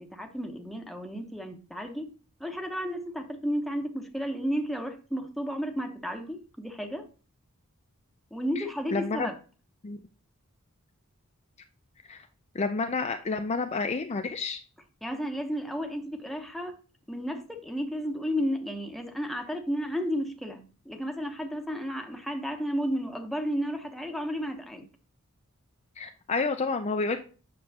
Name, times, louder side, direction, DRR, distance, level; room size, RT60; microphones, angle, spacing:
voice 1, 0.1-2.1 2.4-7.0 8.3-9.4 15.0-16.7 17.1-24.9, equal, ahead, 0.9 m, -32 dB
voice 2, 8.9-9.3 9.8-10.0 12.1-12.3 12.5-14.6 26.0-27.2, left 4 dB, 30° left, 0.5 m, -29 dB
7.8 x 6.4 x 2.8 m
head